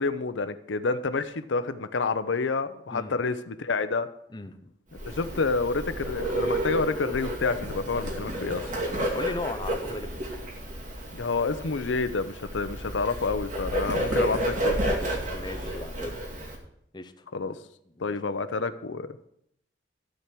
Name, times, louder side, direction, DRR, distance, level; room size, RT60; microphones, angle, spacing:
voice 1, 0.0-4.1 5.1-8.7 11.1-14.8 17.3-17.6 18.0-19.1, left 4 dB, 80° left, 12 dB, 0.6 m, -28 dB
voice 2, 4.3-4.7 9.1-10.1 15.2-16.2 16.9-17.3 18.0-18.2, left 2 dB, 25° left, 7 dB, 0.7 m, -37 dB
Bird, 4.9-16.6, right 1 dB, 45° right, 2.5 m, -31 dB
13.5 x 4.6 x 8.3 m, 0.74 s
head